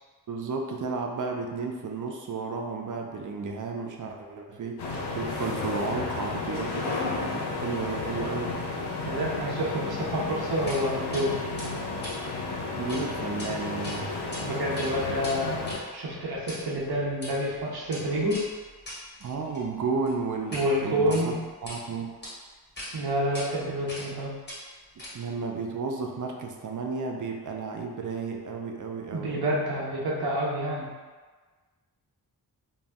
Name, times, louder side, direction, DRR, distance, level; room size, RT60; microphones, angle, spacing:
voice 1, 0.3-8.6 12.8-14.1 19.2-21.3 21.6-22.2 25.1-29.4, right 4 dB, 50° right, 2 dB, 0.4 m, -33 dB
sound 1, 4.8-15.8, left 3 dB, 90° left, 0.5 m, -32 dB
voice 2, 9.0-11.5 14.4-18.4 20.5-21.4 22.9-24.4 29.1-30.9, equal, 70° right, -5 dB, 0.8 m, -28 dB
sound 2, 10.7-10.8 11.1-11.2 11.6-13.0 13.3-13.5 13.8-14.4 14.7-20.7 21.0-21.8 22.2-22.3 22.8-22.9 23.3-23.5 23.9-24.2 24.5-25.4, left 1 dB, 25° left, 1.3 m, -41 dB
2.5 x 2.1 x 3.4 m, 1.4 s
cardioid pair, 65°, 39 cm